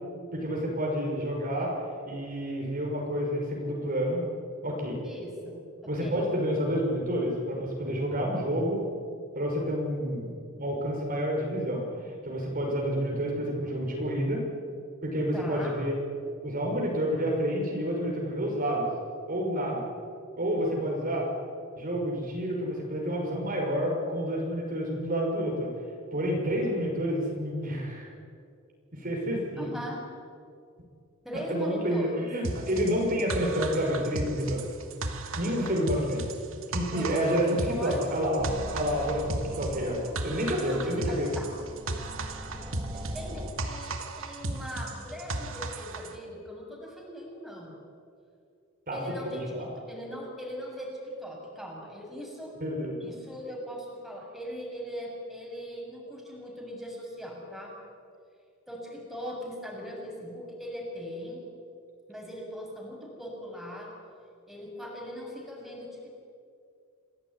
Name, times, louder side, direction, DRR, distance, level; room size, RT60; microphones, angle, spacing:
voice 1, 0.3-1.7 2.0-4.2 4.6-5.0 5.9-8.8 9.3-14.4 15.0-15.9 16.4-18.9 19.3-19.9 20.4-21.2 21.8-25.7 26.1-28.1 28.9-29.7 31.5-34.6 35.4-36.2 36.7-37.4 37.8-38.5 38.7-39.3 39.6-41.3 48.9-49.7 52.6-52.9, equal, 40° right, -1 dB, 5.9 m, -29 dB
voice 2, 5.0-6.3 15.3-15.8 29.6-30.0 31.2-32.3 36.9-38.3 40.6-41.5 43.1-47.8 48.9-52.6 53.0-57.7 58.7-61.4 62.1-63.9 64.5-66.1, equal, ahead, -2 dB, 7.4 m, -39 dB
sound 1, 32.4-46.1, right 2 dB, 70° right, 2.3 m, -35 dB
sound 2, 38.4-43.5, equal, 25° right, 2.4 m, -42 dB
28.5 x 19.0 x 9.9 m, 2.4 s
head